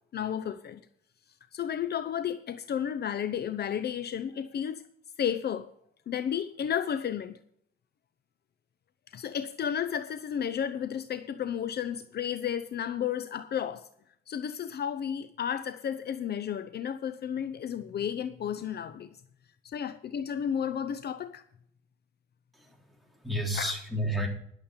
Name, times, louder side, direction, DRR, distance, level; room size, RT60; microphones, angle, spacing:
voice 1, 0.1-0.8 1.5-4.8 5.2-5.7 6.1-7.4 9.1-13.9 14.3-19.1 19.6-21.4 23.5-23.7, left 8 dB, 55° left, 0.7 m, -32 dB
voice 2, 22.5-24.3, equal, ahead, 3.4 m, -32 dB
11.5 x 7.4 x 6.6 m
cardioid pair, 90°, 20 cm